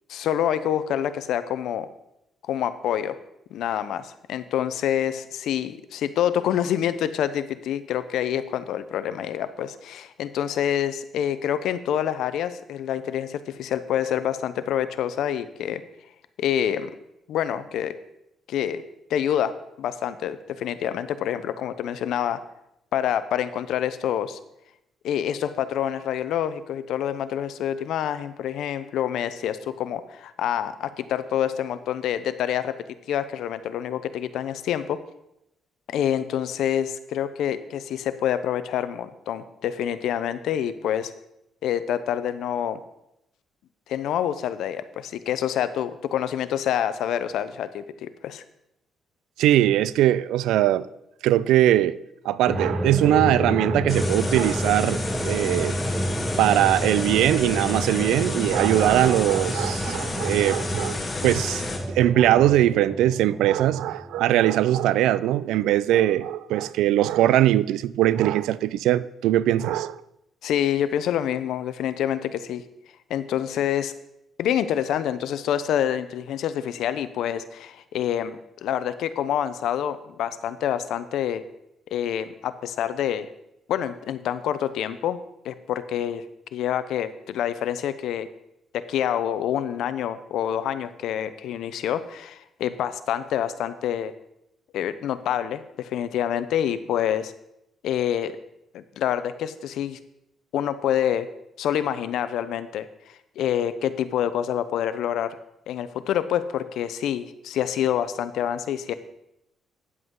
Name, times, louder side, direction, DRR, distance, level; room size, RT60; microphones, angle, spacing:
voice 1, 0.1-1.9 2.4-3.2 3.5-15.8 16.4-16.9 17.3-17.9 18.5-18.8 19.1-19.5 19.8-22.4 22.9-24.4 25.0-32.7 33.1-35.0 35.9-41.1 41.6-42.8 43.9-48.4 70.4-72.6 73.1-73.9 74.4-81.4 81.9-83.3 83.7-85.2 85.4-86.2 86.5-88.3 88.7-94.1 94.7-97.3 97.8-98.3 98.7-100.0 100.5-101.3 101.6-105.4 105.7-108.9, left 10 dB, 80° left, 0.6 m, -27 dB
voice 2, 49.4-50.9 51.2-52.0 52.2-55.7 56.4-61.6 61.9-70.0, right 13 dB, 90° right, 0.3 m, -21 dB
sound 1, 52.5-64.5, equal, 5° right, 0.7 m, -29 dB
sound 2, 53.9-61.8, left 3 dB, 35° left, 1.8 m, -32 dB
9.6 x 7.7 x 3.8 m
cardioid pair, 90°, 0 cm